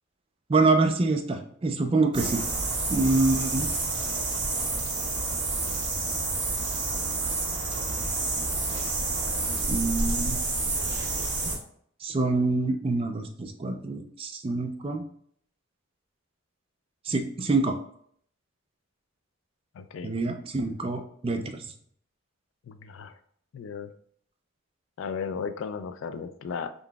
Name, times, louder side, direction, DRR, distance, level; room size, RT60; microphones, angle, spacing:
voice 1, 0.5-2.4 2.9-3.7 9.7-10.4 12.0-15.0 17.1-17.8 20.0-21.6, right 3 dB, 25° right, 5 dB, 0.3 m, -26 dB
sound 1, 2.1-11.6, right 3 dB, 55° right, 1.3 m, -29 dB
voice 2, 19.8-20.1 22.7-23.1 23.5-23.9 25.0-26.7, left 6 dB, 65° left, 11 dB, 0.3 m, -35 dB
3.8 x 3.6 x 2.3 m, 0.64 s
head